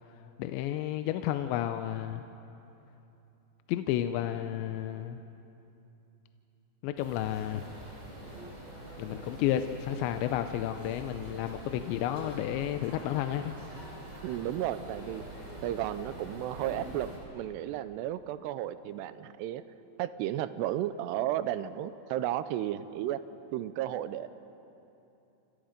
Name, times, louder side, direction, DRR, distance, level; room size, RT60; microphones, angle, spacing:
voice 1, 0.4-2.2 3.7-5.2 6.8-7.7 9.0-13.5, left 12 dB, 85° left, 8 dB, 2.9 m, -32 dB
sound 1, 7.0-17.2, right 1 dB, 15° right, 5.8 m, -45 dB
voice 2, 14.2-15.2 15.6-19.6 20.0-23.2 23.5-24.3, right 12 dB, 80° right, 13 dB, 2.7 m, -33 dB
28.0 x 28.0 x 5.2 m, 2.9 s
omnidirectional pair, 5.1 m